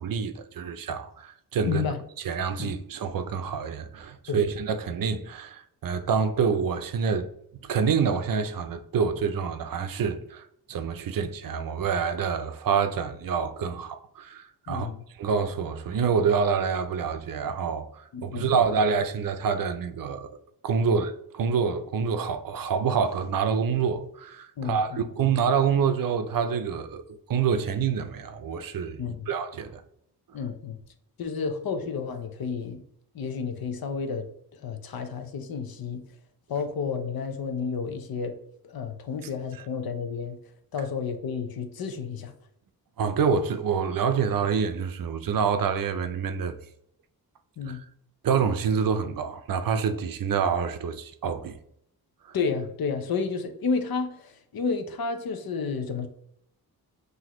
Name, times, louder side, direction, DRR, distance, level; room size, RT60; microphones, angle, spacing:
voice 1, 0.0-1.8 2.2-7.3 7.5-10.4 10.7-14.9 15.2-20.4 20.6-27.0 27.3-29.8 43.0-46.6 47.7-47.8 48.2-51.6 52.3-52.4, right 6 dB, 60° right, 0.5 m, -27 dB
voice 2, 1.6-2.0 2.6-2.7 4.3-4.5 14.7-15.0 18.1-18.5 20.9-21.0 24.6-25.0 29.0-29.3 30.3-30.8 31.2-32.8 33.1-36.0 36.5-38.4 38.6-40.4 40.7-42.3 47.6-47.8 52.3-56.1, left 5 dB, 65° left, 0.7 m, -31 dB
5.7 x 2.7 x 3.0 m
wide cardioid pair, 120°, 39 cm